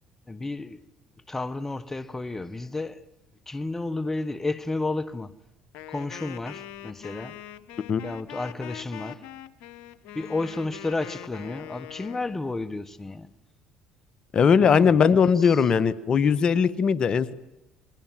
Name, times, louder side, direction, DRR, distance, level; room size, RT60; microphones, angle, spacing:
voice 1, 0.3-0.8 1.3-3.0 3.5-5.3 5.9-7.4 8.0-9.3 10.1-13.3 14.6-15.0 15.3-15.6, left 2 dB, 15° left, 1.4 m, -32 dB
Wind instrument woodwind instrument, 5.7-12.4, left 13 dB, 75° left, 1.5 m, -43 dB
voice 2, 14.3-17.3, left 6 dB, 45° left, 1.5 m, -20 dB
29.5 x 22.5 x 7.7 m
supercardioid pair, 80°, 2 cm